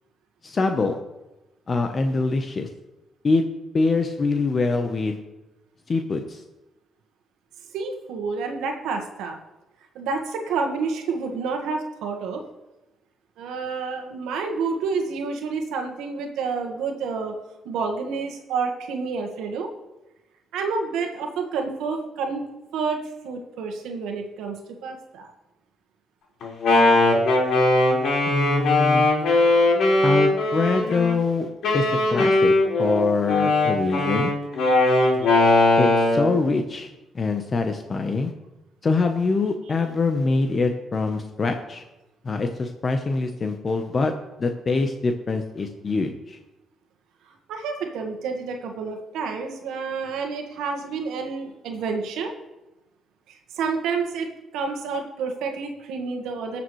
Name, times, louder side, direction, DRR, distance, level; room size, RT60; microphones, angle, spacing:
voice 1, 0.4-0.9 1.7-2.7 3.2-3.4 3.7-5.2 5.9-6.4 28.3-29.1 30.0-31.5 31.7-34.3 35.8-36.9 37.1-38.3 38.8-41.8 42.2-44.1 44.4-46.4, left 3 dB, 40° left, 6 dB, 0.9 m, -24 dB
voice 2, 7.7-9.4 9.9-12.4 13.4-17.3 17.6-19.7 20.5-22.4 22.7-23.0 23.2-25.3 35.0-35.7 47.5-52.3 53.3-54.3 54.5-56.6, right 4 dB, 90° right, 3 dB, 1.5 m, -29 dB
Wind instrument woodwind instrument, 26.4-31.1 31.6-36.3, left 2 dB, 75° left, 4.4 m, -19 dB
19.0 x 7.0 x 3.2 m, 1.0 s
cardioid pair, 90°, 0 cm